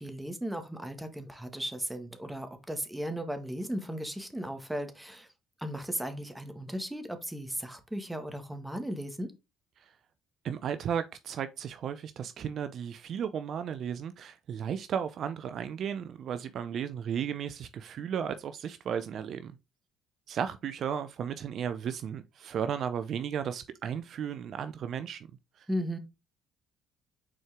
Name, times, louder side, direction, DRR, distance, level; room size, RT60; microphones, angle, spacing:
voice 1, 0.0-5.3 5.6-9.3 25.7-26.0, equal, 5° right, 1.7 m, -36 dB
voice 2, 10.4-19.6 20.3-25.3 25.6-25.7, right 8 dB, 60° right, 0.5 m, -34 dB
6.2 x 4.5 x 3.6 m
hypercardioid pair, 65°, 0 cm